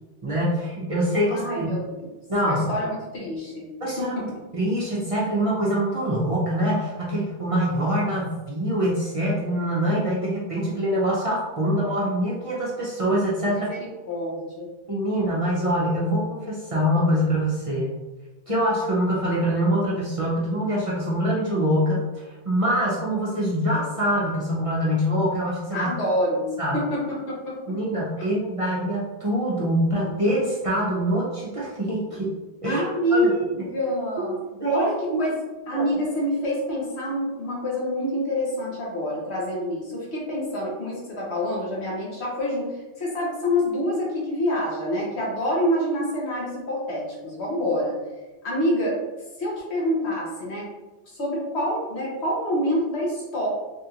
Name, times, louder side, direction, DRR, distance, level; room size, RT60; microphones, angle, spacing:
voice 1, 0.2-1.7 2.3-2.7 3.8-13.7 14.9-17.9 18.5-25.9 26.6-26.8 27.7-32.3 32.6-32.8 33.1-33.3 34.2-34.3 34.6-35.3 35.7-35.8, equal, 40° right, -6 dB, 0.6 m, -24 dB
voice 2, 1.3-2.1 2.5-3.7 4.0-4.1 13.4-14.7 25.7-26.5 26.7-27.8 28.2-28.3 32.7-34.3 34.7-35.4 35.7-48.0 48.4-49.0 49.4-50.7 51.1-53.5, equal, 80° left, -4 dB, 1.3 m, -27 dB
3.4 x 2.4 x 2.8 m, 1.1 s
omnidirectional pair, 1.1 m